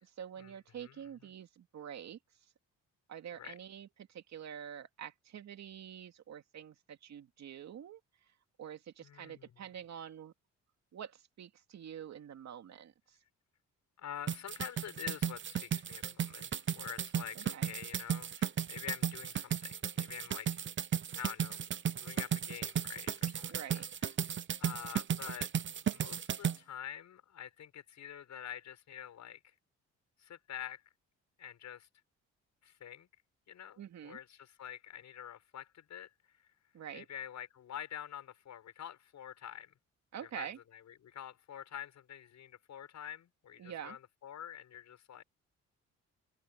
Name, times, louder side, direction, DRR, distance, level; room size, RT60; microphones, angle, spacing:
voice 1, 0.0-2.2 3.1-8.0 8.6-10.3 10.9-13.2 17.3-17.7 23.5-23.8 33.8-34.2 36.7-37.1 40.1-40.6 43.6-44.0, right 9 dB, 65° right, 2.5 m, -46 dB
voice 2, 9.0-9.5 14.0-20.6 21.2-21.6 22.0-24.1 24.6-25.5 25.8-29.5 30.2-30.8 31.4-31.9 32.6-33.1 33.5-36.4 36.9-39.7 40.2-45.2, left 10 dB, 65° left, 7.4 m, -47 dB
sound 1, 14.3-26.6, right 8 dB, 40° right, 0.8 m, -35 dB
open air
cardioid pair, 90°, 30 cm